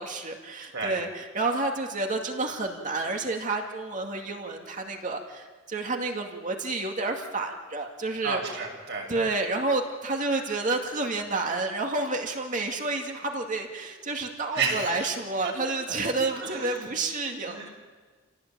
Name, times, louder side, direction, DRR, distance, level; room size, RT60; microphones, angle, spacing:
voice 1, 0.0-8.7 9.1-17.7, right 3 dB, 40° right, 2 dB, 2.3 m, -30 dB
voice 2, 8.2-9.0 14.5-14.9 15.9-16.0 16.3-16.9 17.5-17.7, right 4 dB, 60° right, 0 dB, 6.7 m, -31 dB
28.0 x 17.5 x 8.9 m, 1.4 s
head